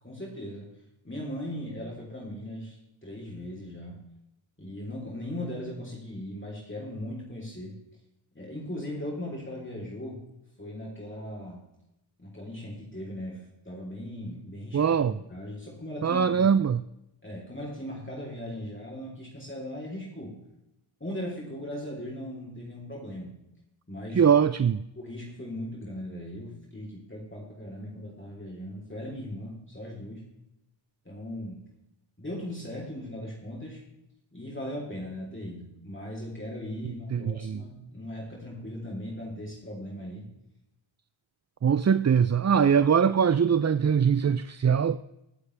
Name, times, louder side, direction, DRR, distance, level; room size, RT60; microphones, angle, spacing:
voice 1, 0.0-0.7 1.0-4.1 4.6-7.8 8.4-10.2 10.6-11.7 12.2-16.7 17.2-20.4 21.0-23.4 23.9-24.3 25.0-30.3 31.1-31.6 32.2-33.8 34.3-40.3, left 1 dB, 25° left, 3.6 m, -38 dB
voice 2, 14.7-15.1 16.0-16.8 24.2-24.8 37.1-37.6 41.6-45.0, right 7 dB, 35° right, 0.4 m, -22 dB
20.5 x 8.2 x 3.4 m
wide cardioid pair, 40°, 47 cm